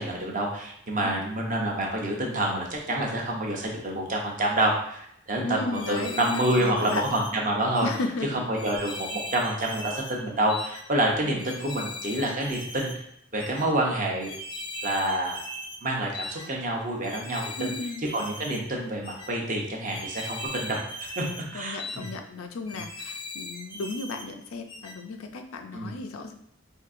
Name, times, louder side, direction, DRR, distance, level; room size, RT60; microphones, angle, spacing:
voice 1, 0.0-5.0 5.3-7.9 8.3-12.9 13.3-14.3 14.8-15.4 15.8-17.7 18.1-21.3 21.5-22.1 25.7-25.9, right 1 dB, 40° right, 0 dB, 0.7 m, -28 dB
voice 2, 5.4-7.0 7.8-8.4 11.2-11.4 17.6-18.1 21.5-26.3, left 3 dB, 85° left, 5 dB, 0.4 m, -35 dB
sound 1, 5.7-7.3 7.7-8.0 8.5-10.2 10.5-10.8 11.4-13.0 13.4-13.6 14.2-15.8 16.1-16.5 17.0-18.6 19.0-19.3 19.8-21.5 21.8-22.1 22.7-24.3 24.7-25.0, left 1 dB, 25° left, 0.5 m, -39 dB
4.4 x 2.7 x 2.5 m, 0.72 s
head